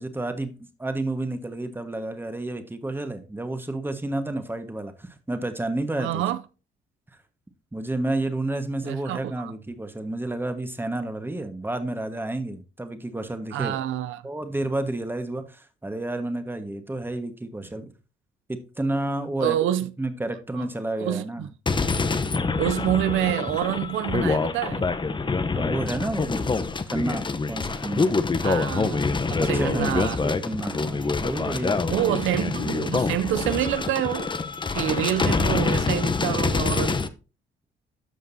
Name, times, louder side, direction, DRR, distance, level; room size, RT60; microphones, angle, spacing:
voice 1, 0.0-6.2 7.7-13.8 14.2-17.8 18.5-19.6 20.0-21.5 25.5-26.5 26.9-28.2 29.4-32.1, right 2 dB, 10° right, 1.4 m, -30 dB
voice 2, 6.0-6.4 8.8-9.5 13.5-14.2 19.4-19.9 20.6-20.7 21.0-21.5 22.6-24.8 28.4-30.2 31.9-34.3 34.7-37.0, right 12 dB, 85° right, 0.5 m, -27 dB
sound 1, 21.7-37.1, left 4 dB, 25° left, 0.8 m, -26 dB
13.0 x 5.2 x 2.7 m
cardioid pair, 90°, 20 cm